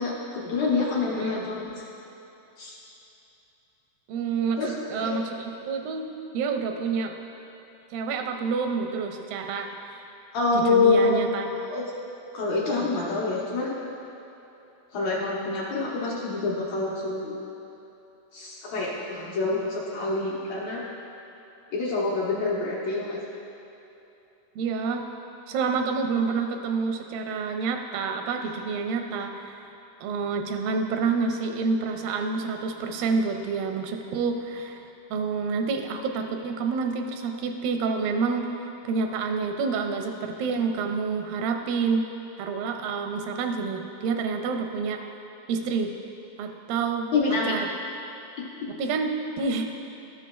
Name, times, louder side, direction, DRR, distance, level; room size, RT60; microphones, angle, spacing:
voice 1, 0.0-1.7 2.6-2.7 4.6-5.2 10.3-11.8 12.3-13.7 14.9-17.3 18.3-20.8 21.7-23.2 47.1-47.6, left 3 dB, 65° left, -6 dB, 2.0 m, -26 dB
voice 2, 4.1-4.6 4.9-6.1 6.3-7.1 7.9-10.0 10.5-11.5 13.0-13.1 24.6-25.0 25.5-29.6 30.0-38.5 38.9-42.1 42.4-45.0 45.5-45.9 46.4-47.1 47.5-47.7 48.8-49.1 49.4-49.7, right 5 dB, 90° right, 4 dB, 2.3 m, -28 dB
13.0 x 7.2 x 2.3 m, 2.9 s
omnidirectional pair, 3.9 m